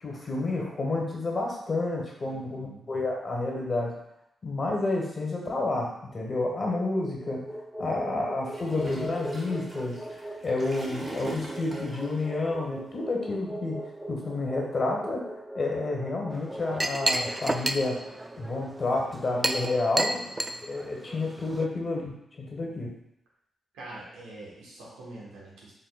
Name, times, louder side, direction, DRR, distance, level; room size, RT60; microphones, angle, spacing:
voice 1, 0.0-3.9 4.4-7.5 7.8-13.8 14.1-18.0 18.4-20.3 20.6-22.9, left 2 dB, 45° left, -1 dB, 1.2 m, -30 dB
voice 2, 2.2-2.9 22.6-22.8 23.7-25.7, right 2 dB, 90° right, -5 dB, 1.1 m, -46 dB
sound 1, 6.1-20.4, right 1 dB, ahead, 0.8 m, -41 dB
Gurgling / Toilet flush, 8.5-12.3, right 2 dB, 45° right, 1.0 m, -40 dB
Chink clink, 16.3-21.7, right 1 dB, 20° right, 0.3 m, -31 dB
4.0 x 3.7 x 2.3 m, 0.79 s
supercardioid pair, 45°, 0 cm